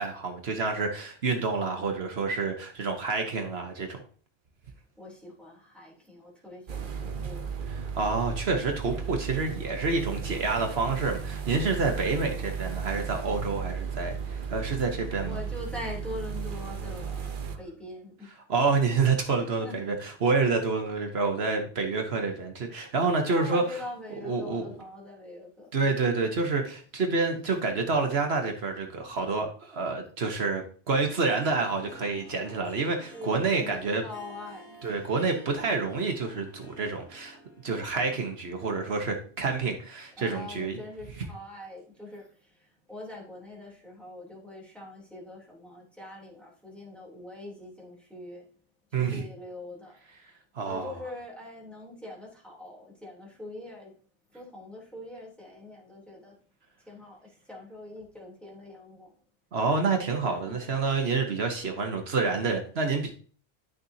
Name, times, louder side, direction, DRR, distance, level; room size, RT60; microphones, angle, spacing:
voice 1, 0.0-4.0 7.7-15.4 18.5-23.8 24.2-24.8 25.7-34.0 34.8-37.4 37.6-40.8 48.9-49.2 50.6-51.0 59.5-63.1, right 4 dB, 70° right, 1.4 m, -28 dB
voice 2, 5.0-7.5 11.7-12.0 15.2-18.3 19.4-19.8 23.3-25.7 33.1-34.8 40.2-48.5 48.9-50.0 50.6-53.9 54.3-56.3 56.9-59.1 60.2-60.7, left 2 dB, ahead, 3.2 m, -43 dB
sound 1, 6.7-17.6, right 6 dB, 50° right, 1.0 m, -35 dB
Harp, 31.2-39.7, equal, 65° left, 4.0 m, -51 dB
10.5 x 6.6 x 2.8 m
omnidirectional pair, 1.1 m